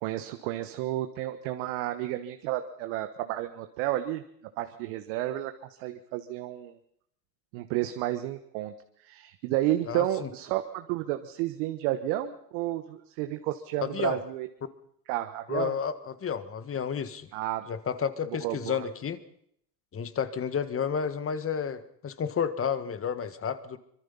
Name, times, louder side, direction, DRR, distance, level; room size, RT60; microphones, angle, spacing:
voice 1, 0.0-4.2 4.6-5.5 5.8-6.7 7.5-8.7 9.0-14.5 15.1-15.7 17.3-17.6 18.4-18.8, right 14 dB, 60° right, 8 dB, 1.5 m, -31 dB
voice 2, 9.9-10.3 13.8-14.2 15.5-17.3 17.7-19.2 19.9-23.8, left 7 dB, 25° left, 12 dB, 1.7 m, -31 dB
25.0 x 22.5 x 5.7 m, 0.71 s
hypercardioid pair, 100°, 49 cm